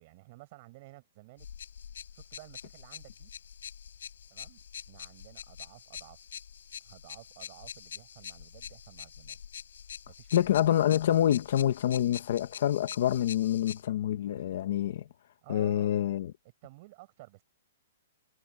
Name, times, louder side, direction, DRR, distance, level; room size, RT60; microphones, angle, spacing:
voice 1, 0.0-1.5 2.1-3.3 4.3-6.2 6.8-9.4 10.1-10.6 15.4-15.9 16.6-17.4, right 21 dB, 30° right, 6.8 m, -53 dB
sound 1, 1.4-13.8, left 8 dB, 75° left, 3.9 m, -46 dB
voice 2, 10.3-15.0 15.5-16.3, left 11 dB, 45° left, 1.5 m, -27 dB
hypercardioid pair, 175°, 0 cm